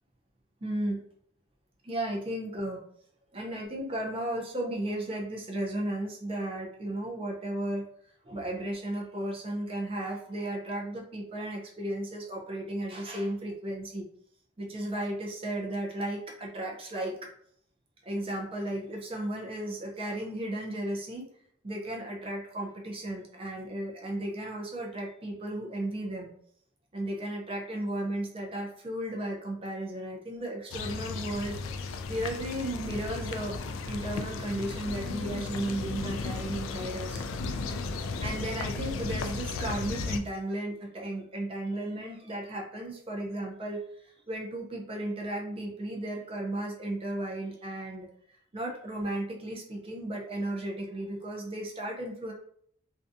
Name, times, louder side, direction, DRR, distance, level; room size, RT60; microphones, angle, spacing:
voice 1, 0.6-1.0 1.8-2.8 3.3-7.9 8.2-14.0 14.6-17.1 18.1-21.3 21.6-26.3 26.9-31.6 32.1-33.6 33.9-37.3 38.2-48.1 48.5-52.3, right 1 dB, 30° right, -1 dB, 0.5 m, -34 dB
sound 1, 30.7-40.2, left 4 dB, 80° left, 0.3 m, -35 dB
2.6 x 2.2 x 2.5 m, 0.64 s
head